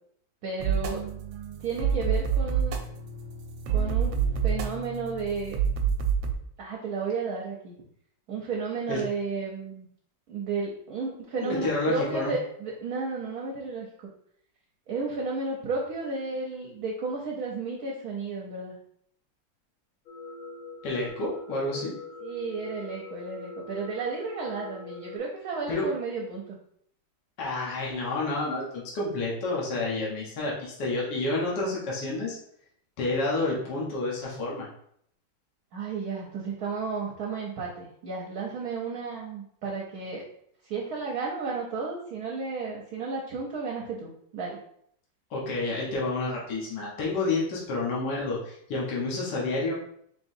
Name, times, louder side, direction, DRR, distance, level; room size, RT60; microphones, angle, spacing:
voice 1, 0.4-1.0 1.6-2.8 3.7-5.6 6.6-7.7 8.3-9.9 10.3-13.9 14.9-18.8 22.2-26.6 35.7-40.2 40.6-44.6, right 4 dB, 60° right, -2 dB, 1.0 m, -33 dB
sound 1, 0.6-6.3, right 7 dB, 85° right, 1.4 m, -28 dB
voice 2, 11.4-12.3 20.8-21.9 25.7-25.9 27.4-32.4 33.0-34.7 45.3-49.7, left 2 dB, 65° left, -5 dB, 1.7 m, -29 dB
sound 2, 20.1-25.2, left 4 dB, 90° left, 1.5 m, -43 dB
4.4 x 3.9 x 2.6 m, 0.68 s
omnidirectional pair, 2.1 m